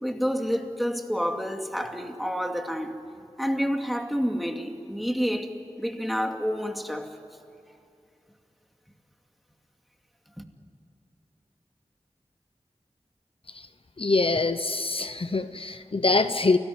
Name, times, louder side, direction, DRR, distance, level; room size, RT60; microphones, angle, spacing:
voice 1, 0.0-3.0 3.4-7.2 7.7-7.8 10.4-10.5, equal, ahead, 2.4 m, -29 dB
voice 2, 14.0-16.6, left 3 dB, 55° left, 0.9 m, -24 dB
29.5 x 19.5 x 9.6 m
wide cardioid pair, 65°, 11 cm